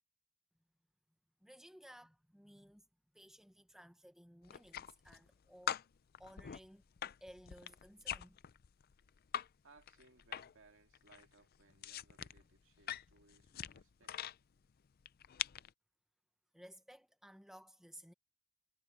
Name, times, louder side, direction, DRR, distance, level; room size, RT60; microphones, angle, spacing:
voice 1, 1.4-5.8 6.2-6.8 7.2-8.4 16.5-18.1, equal, ahead, 1.1 m, -58 dB
sound 1, 4.4-5.3 5.7-9.5 9.8-10.7 10.9-14.4 15.0-15.7, left 10 dB, 45° left, 0.4 m, -44 dB
voice 2, 9.6-14.2, right 3 dB, 65° right, 2.3 m, -66 dB
head